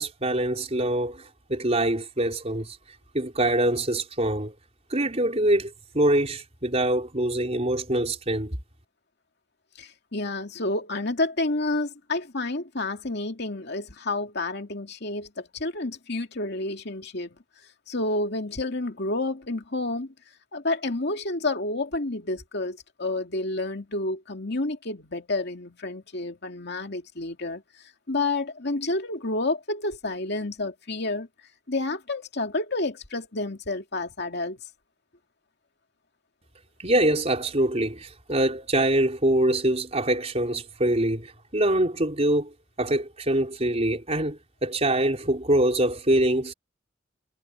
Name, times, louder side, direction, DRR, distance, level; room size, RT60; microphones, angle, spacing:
voice 1, 0.0-2.8 3.1-4.5 4.9-8.6 36.8-42.5 42.8-46.5, right 1 dB, 35° right, 4.4 m, -24 dB
voice 2, 9.8-17.3 17.9-20.1 20.5-27.6 28.1-31.3 31.7-34.6, left 2 dB, 60° left, 2.5 m, -29 dB
head